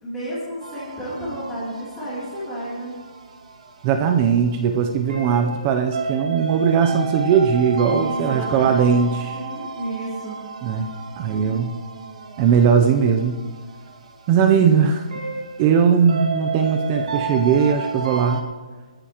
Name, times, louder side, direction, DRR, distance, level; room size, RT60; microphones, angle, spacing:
voice 1, 0.0-2.9 7.9-10.3 14.6-14.8, right 1 dB, 5° left, -12 dB, 2.9 m, -31 dB
sound 1, 0.6-18.4, right 4 dB, 65° right, 2.0 m, -33 dB
voice 2, 3.8-9.4 10.6-10.9 11.2-11.7 12.4-13.4 14.3-15.0 15.6-18.4, right 7 dB, 15° right, 5 dB, 0.5 m, -19 dB
19.5 x 14.0 x 2.9 m, 1.3 s
hypercardioid pair, 180°, 4 cm